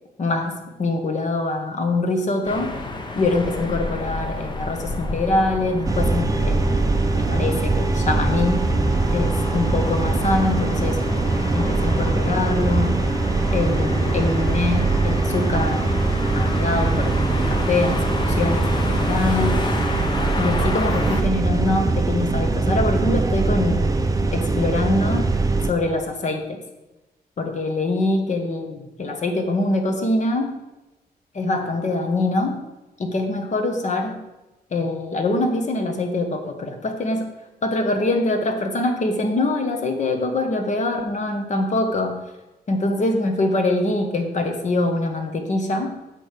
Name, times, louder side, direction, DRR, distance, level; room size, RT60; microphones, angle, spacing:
voice 1, 0.2-2.7 3.1-6.6 7.1-8.6 9.1-11.0 11.5-13.0 13.5-16.0 16.3-19.6 20.4-24.0 24.3-25.3 25.6-26.6 27.4-30.5 31.3-32.6 33.0-34.2 34.7-37.3 37.6-42.2 42.7-45.9, left 2 dB, 45° left, 4 dB, 1.3 m, -24 dB
sound 1, 2.4-21.2, left 2 dB, 30° left, 0.8 m, -29 dB
sound 2, 5.9-25.7, right 3 dB, 20° right, 0.6 m, -22 dB
7.5 x 6.5 x 5.0 m, 1.0 s
wide cardioid pair, 150°, 16 cm